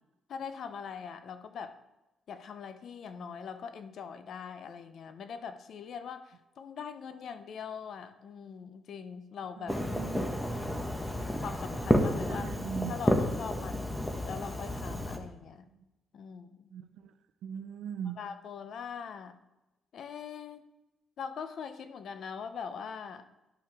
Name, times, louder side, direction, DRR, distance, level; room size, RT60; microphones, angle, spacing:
voice 1, 0.3-1.8 2.3-9.8 11.2-12.5 12.9-15.6 16.1-16.7 18.2-19.4 19.9-20.6 21.2-23.3, left 6 dB, 60° left, 10 dB, 0.6 m, -42 dB
voice 2, 9.6-10.3 12.3-13.0 16.7-17.1 17.4-18.2, right 8 dB, 75° right, 10 dB, 0.5 m, -40 dB
Fireworks, 9.7-15.2, left 1 dB, 10° left, 1.0 m, -31 dB
11.0 x 5.7 x 3.5 m, 1.0 s
cardioid pair, 90°, 0 cm